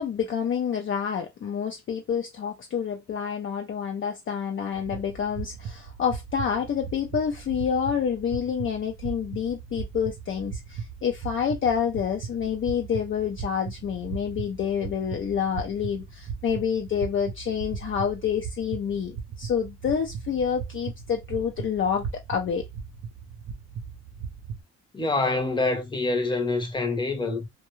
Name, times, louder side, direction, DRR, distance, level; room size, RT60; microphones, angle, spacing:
voice 1, 0.0-22.6, left 7 dB, 40° left, 0.5 m, -28 dB
sound 1, 4.7-24.6, right 6 dB, 60° right, 0.6 m, -38 dB
voice 2, 24.9-27.5, left 3 dB, 15° left, 0.8 m, -26 dB
2.2 x 2.2 x 3.0 m
cardioid pair, 90°, 30 cm